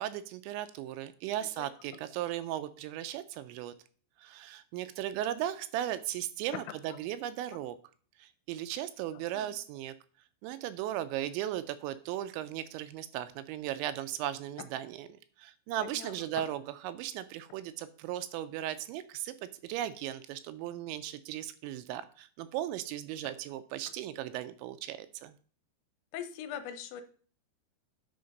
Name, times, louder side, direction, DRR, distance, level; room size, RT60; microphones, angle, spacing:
voice 1, 0.0-3.7 4.2-7.8 8.2-9.9 10.4-15.1 15.4-25.3, right 12 dB, 85° right, 12 dB, 2.8 m, -37 dB
voice 2, 9.1-9.5 15.8-16.1 26.1-27.0, left 9 dB, 80° left, 9 dB, 2.8 m, -42 dB
9.5 x 4.3 x 5.2 m, 0.43 s
omnidirectional pair, 5.4 m